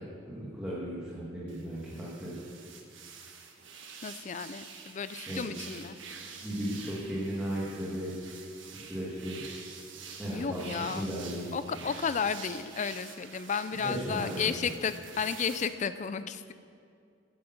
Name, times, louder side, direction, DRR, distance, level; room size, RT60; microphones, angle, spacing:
voice 1, 0.3-2.4 5.3-5.5 6.4-8.1 8.7-9.4 10.2-11.8 13.8-14.5, equal, 5° right, -9 dB, 1.8 m, -36 dB
sound 1, 1.5-15.7, right 5 dB, 70° right, 1.3 m, -47 dB
voice 2, 4.0-6.0 10.3-11.0 11.5-16.5, left 6 dB, 40° left, 13 dB, 0.4 m, -33 dB
8.9 x 8.0 x 7.1 m, 2.4 s
head